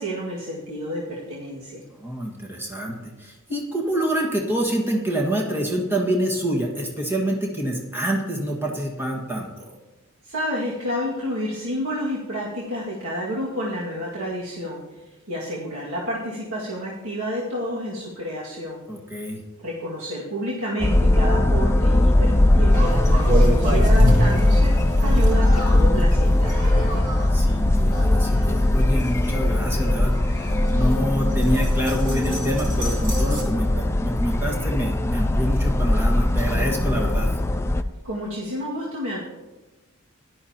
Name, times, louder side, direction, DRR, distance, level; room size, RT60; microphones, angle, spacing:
voice 1, 0.0-1.8 10.2-14.8 15.3-18.8 19.6-27.1 38.0-39.2, equal, 70° right, -6 dB, 2.1 m, -30 dB
voice 2, 2.0-9.7 18.9-19.4 27.3-37.3, right 1 dB, 10° right, -1 dB, 1.7 m, -27 dB
sound 1, 20.8-37.8, left 1 dB, 10° left, 0.4 m, -19 dB
sound 2, 22.7-33.4, equal, 35° right, 2.3 m, -30 dB
16.0 x 11.5 x 2.9 m, 1.1 s
head